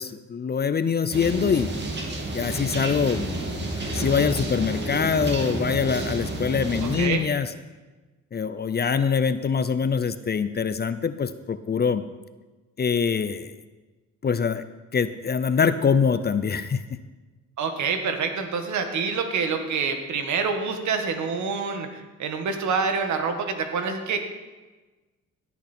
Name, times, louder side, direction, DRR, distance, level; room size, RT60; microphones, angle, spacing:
voice 1, 0.0-1.7 2.3-3.4 3.8-7.5 8.3-12.0 12.8-13.5 14.2-14.6 14.9-16.8, left 6 dB, 35° left, 12 dB, 0.7 m, -24 dB
sound 1, 1.1-7.1, right 2 dB, 35° right, 2.4 m, -30 dB
voice 2, 6.8-7.3 17.6-24.2, right 5 dB, 70° right, 6 dB, 1.7 m, -27 dB
16.0 x 8.5 x 4.4 m, 1.2 s
cardioid pair, 90°, 30 cm